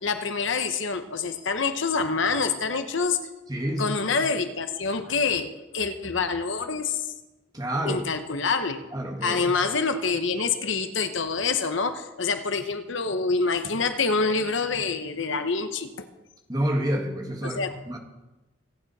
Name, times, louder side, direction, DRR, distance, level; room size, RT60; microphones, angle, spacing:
voice 1, 0.0-3.2 3.8-7.1 7.8-8.8 9.2-15.9 17.4-17.7, left 4 dB, 70° left, 9 dB, 1.0 m, -26 dB
voice 2, 3.5-4.0 7.5-8.1 8.9-9.6 16.5-18.0, right 1 dB, 20° right, 2 dB, 1.8 m, -28 dB
25.0 x 9.1 x 4.2 m, 1.1 s
head